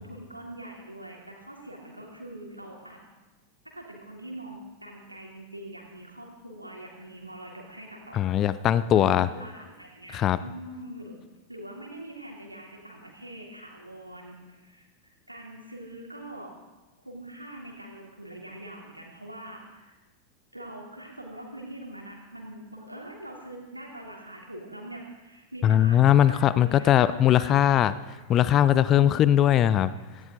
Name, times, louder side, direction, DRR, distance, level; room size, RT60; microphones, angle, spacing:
voice 1, 0.0-3.0 3.6-8.5 8.9-16.5 17.0-20.0 20.5-27.7 28.7-29.2, right 1 dB, 85° right, -1 dB, 3.3 m, -43 dB
voice 2, 8.1-9.3 10.1-10.4 25.6-27.9 28.3-29.9, left 11 dB, 30° left, 16 dB, 0.6 m, -20 dB
17.5 x 16.0 x 3.9 m, 1.2 s
figure-of-eight pair, 90°, 0 cm